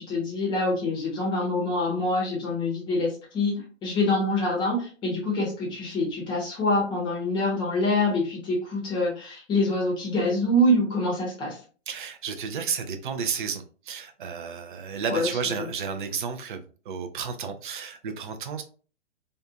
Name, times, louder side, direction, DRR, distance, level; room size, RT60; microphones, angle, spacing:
voice 1, 0.0-11.6 15.1-15.3 15.6-15.7, left 1 dB, 10° left, -3 dB, 0.7 m, -25 dB
voice 2, 11.9-18.6, right 6 dB, 45° right, 7 dB, 0.4 m, -32 dB
2.6 x 2.3 x 2.5 m, 0.39 s
figure-of-eight pair, 125°, 37 cm